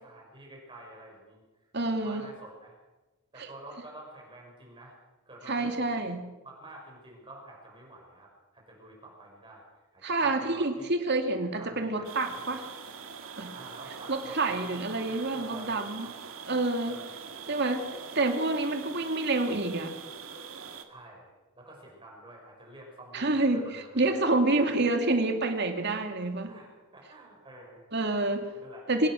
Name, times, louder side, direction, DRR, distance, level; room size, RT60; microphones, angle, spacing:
voice 1, 0.0-1.4 1.8-2.7 3.3-4.9 5.3-6.1 6.4-8.3 8.5-10.9 11.5-12.5 13.5-16.1 16.8-17.3 20.9-24.3 24.6-24.9 26.5-27.9 28.3-28.8, right 1 dB, 25° right, -2 dB, 6.3 m, -49 dB
voice 2, 1.7-2.3 5.5-6.2 10.0-12.6 13.4-13.5 14.1-16.1 16.5-16.9 17.5-17.9 18.1-19.9 23.1-26.5 27.9-28.5 28.9-29.1, right 2 dB, 55° right, 5 dB, 2.6 m, -28 dB
sound 1, 12.0-20.8, right 6 dB, 80° right, 2.1 m, -43 dB
24.0 x 17.5 x 6.6 m, 1.1 s
head